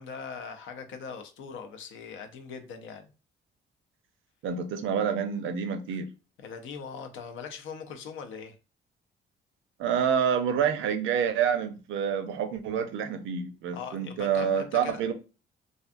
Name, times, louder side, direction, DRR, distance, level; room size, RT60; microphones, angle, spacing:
voice 1, 0.0-3.1 4.5-4.6 6.4-8.6 13.7-15.1, left 6 dB, 75° left, 0.5 m, -41 dB
voice 2, 4.4-6.1 9.8-15.1, right 7 dB, 80° right, 0.5 m, -28 dB
2.5 x 2.4 x 2.5 m
cardioid pair, 90°, 20 cm